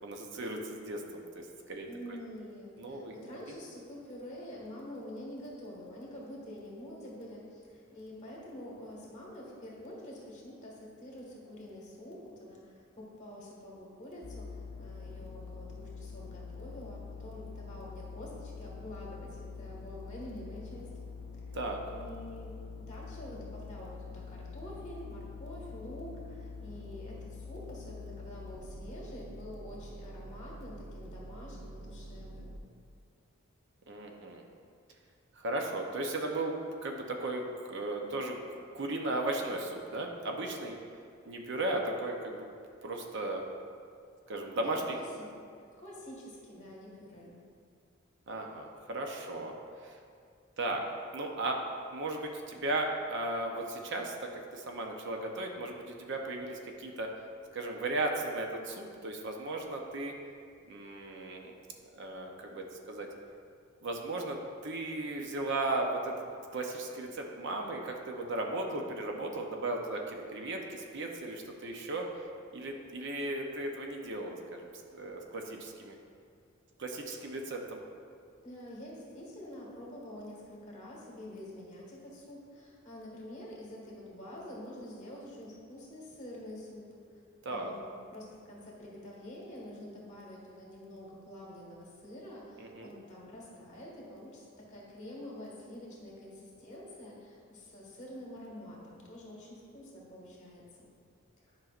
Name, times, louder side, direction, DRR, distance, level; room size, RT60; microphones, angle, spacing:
voice 1, 0.0-1.9 2.8-3.1 21.5-21.8 33.9-34.4 35.4-36.5 36.8-37.4 37.7-38.4 38.7-40.7 41.2-42.4 42.8-43.4 44.3-45.0 48.3-49.5 49.8-50.0 50.6-50.8 51.1-51.6 51.9-57.1 57.5-60.1 60.7-61.5 61.9-63.1 63.8-66.2 66.5-72.1 72.5-75.9 76.8-77.8 87.4-87.7 92.6-92.9, right 2 dB, 60° right, 2 dB, 0.7 m, -36 dB
voice 2, 1.9-20.9 21.4-21.5 21.8-22.6 22.9-32.6 44.6-45.3 45.8-47.4 78.4-86.9 87.5-100.8 101.5-101.6, left 1 dB, 35° left, -4 dB, 1.6 m, -47 dB
sound 1, 14.2-32.6, left 3 dB, 65° left, 0.6 m, -45 dB
10.5 x 5.6 x 2.5 m, 2.2 s
head